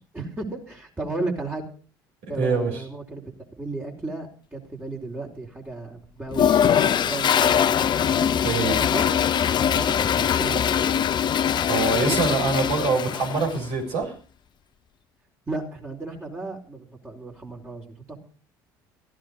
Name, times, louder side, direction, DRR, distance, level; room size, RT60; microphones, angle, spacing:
voice 1, 0.1-1.6 2.3-3.3 3.6-7.7 8.7-9.3 9.7-10.9 12.0-12.3 15.5-18.2, right 2 dB, 15° right, -2 dB, 4.6 m, -34 dB
voice 2, 2.2-2.8 8.4-8.8 11.7-14.2, right 3 dB, 65° right, 1 dB, 7.2 m, -24 dB
Toilet flush, 6.3-13.6, left 8 dB, 40° left, 0.7 m, -22 dB
16.5 x 15.0 x 5.2 m, 0.40 s
figure-of-eight pair, 60°, 11 cm